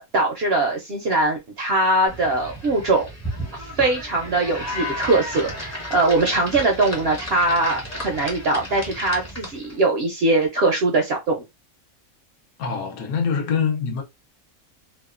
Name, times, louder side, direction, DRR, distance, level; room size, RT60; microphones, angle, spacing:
voice 1, 0.0-3.1 3.5-11.4, right 2 dB, 70° right, 0.6 m, -21 dB
sound 1, 2.1-9.8, left 1 dB, 20° left, 0.4 m, -33 dB
voice 2, 12.6-14.0, left 6 dB, 80° left, 1.1 m, -24 dB
2.7 x 2.0 x 2.3 m
omnidirectional pair, 1.5 m